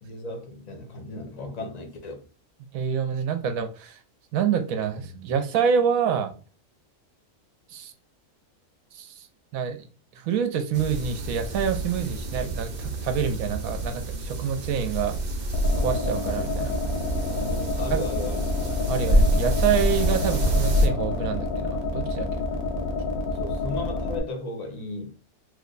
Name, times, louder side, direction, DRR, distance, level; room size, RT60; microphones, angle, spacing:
voice 1, 0.0-2.2 17.2-18.4 23.3-25.1, left 2 dB, 40° left, 0.6 m, -35 dB
voice 2, 2.7-4.0 4.3-6.3 7.7-7.9 8.9-9.3 9.5-15.2 15.8-16.7 17.9-18.0 18.9-22.4, right 7 dB, 70° right, 1.0 m, -27 dB
sound 1, 10.7-20.9, equal, 50° right, 0.5 m, -27 dB
sound 2, 15.5-24.2, left 3 dB, 75° left, 1.1 m, -29 dB
3.1 x 2.2 x 3.8 m
omnidirectional pair, 1.6 m